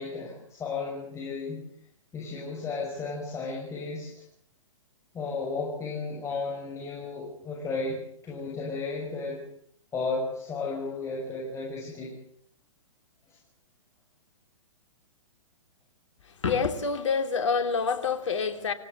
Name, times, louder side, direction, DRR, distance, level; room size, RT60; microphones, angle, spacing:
voice 1, 0.0-1.6 2.1-4.1 5.1-9.4 9.9-12.1, left 3 dB, 15° left, 6.7 m, -34 dB
voice 2, 16.4-18.7, left 5 dB, 65° left, 3.2 m, -27 dB
28.0 x 16.5 x 8.1 m
figure-of-eight pair, 120°, 17 cm